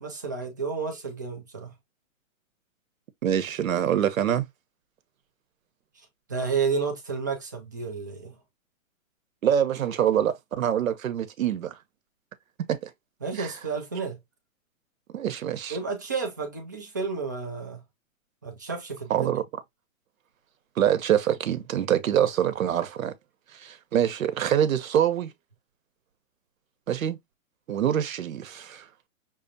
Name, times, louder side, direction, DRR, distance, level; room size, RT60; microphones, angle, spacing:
voice 1, 0.0-1.7 6.0-8.4 13.2-14.2 15.7-17.8 18.4-19.3, right 5 dB, 15° right, 0.4 m, -31 dB
voice 2, 3.2-4.4 9.4-11.8 12.7-12.9 13.3-13.5 15.1-15.8 19.1-19.4 20.8-23.1 23.5-25.3 26.9-27.2 27.7-28.9, right 10 dB, 75° right, 1.1 m, -25 dB
6.2 x 2.5 x 2.7 m
hypercardioid pair, 160°, 40 cm